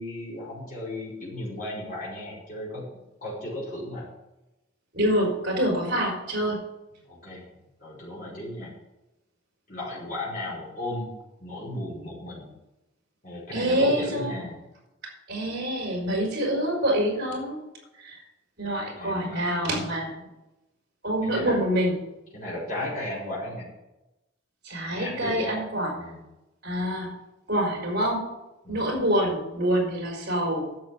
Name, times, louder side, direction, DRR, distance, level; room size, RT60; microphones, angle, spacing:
voice 1, 0.0-2.9 3.2-4.1 7.1-7.4 7.8-8.7 9.7-11.1 11.4-12.5 13.2-14.6 19.0-19.4 21.2-21.6 22.3-23.7 24.9-25.5 25.9-26.2 26.9-27.0 28.6-28.9, left 1 dB, 45° left, -7 dB, 5.1 m, -35 dB
voice 2, 4.9-6.6 13.5-14.3 15.3-17.6 18.0-18.2 18.6-20.2 21.0-22.0 24.6-25.9 26.6-27.1 27.5-28.3 28.7-30.7, equal, 50° right, 0 dB, 4.5 m, -26 dB
10.5 x 7.5 x 6.9 m, 0.97 s
head